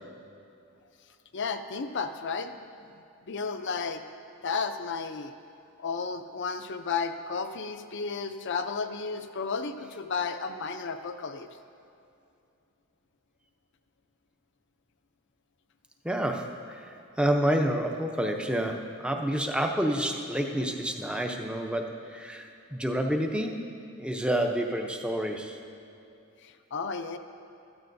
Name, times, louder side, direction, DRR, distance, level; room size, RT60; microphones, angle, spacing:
voice 1, 1.3-3.0 3.3-4.0 4.4-5.3 5.8-11.5 26.4-27.2, left 5 dB, 55° left, 8 dB, 0.5 m, -33 dB
voice 2, 16.0-23.7 24.0-25.6, right 1 dB, 5° right, 3 dB, 0.6 m, -29 dB
15.5 x 13.0 x 2.7 m, 2.7 s
head